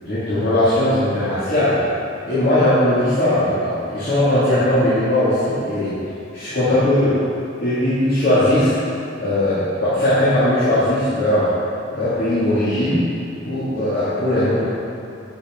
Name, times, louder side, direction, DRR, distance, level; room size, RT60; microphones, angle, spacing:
voice 1, 0.1-1.8 2.2-5.9 6.3-7.2 7.6-8.7 9.2-11.5 11.9-13.0 13.4-14.7, left 1 dB, 55° left, -13 dB, 1.9 m, -19 dB
11.0 x 5.3 x 3.6 m, 2.7 s
head